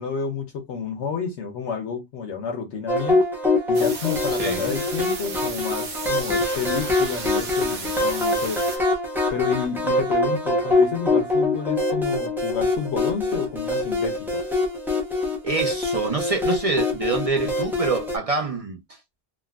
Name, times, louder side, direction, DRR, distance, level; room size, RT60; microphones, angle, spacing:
voice 1, 0.0-3.2 3.7-8.6 9.3-14.4, left 6 dB, 75° left, 1.0 m, -30 dB
sound 1, 2.9-18.2, left 2 dB, ahead, 0.6 m, -24 dB
sound 2, 3.7-8.8, right 5 dB, 70° right, 1.0 m, -35 dB
voice 2, 4.4-4.7 15.4-18.8, right 3 dB, 45° right, 0.4 m, -26 dB
3.5 x 2.3 x 2.3 m
omnidirectional pair, 1.2 m